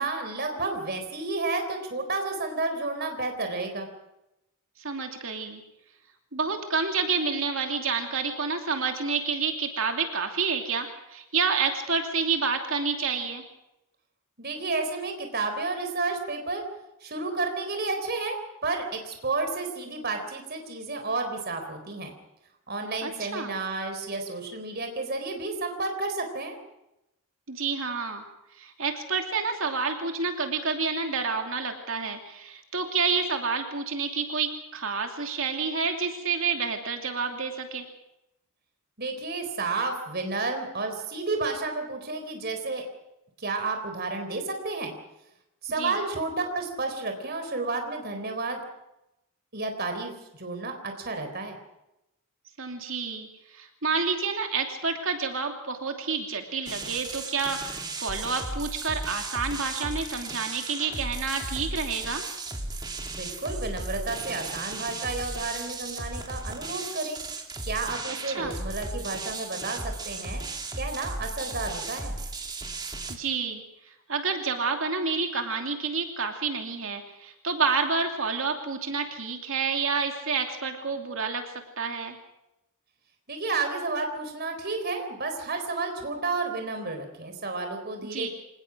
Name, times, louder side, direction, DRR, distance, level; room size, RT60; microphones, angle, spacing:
voice 1, 0.0-3.9 14.4-16.6 17.0-22.1 22.7-26.6 39.0-42.8 43.4-44.9 45.6-48.6 49.5-51.6 63.1-67.2 67.7-70.4 70.7-72.2 83.3-88.3, right 3 dB, 45° right, 5 dB, 4.1 m, -31 dB
voice 2, 4.8-5.6 6.3-13.4 23.0-23.5 27.5-28.2 28.5-37.8 45.8-46.0 52.6-62.2 68.3-68.5 73.1-82.2 88.1-88.3, right 5 dB, 60° right, 4 dB, 2.8 m, -29 dB
sound 1, 56.7-73.2, right 2 dB, 20° right, 2.3 m, -36 dB
25.5 x 19.5 x 6.3 m, 0.89 s
head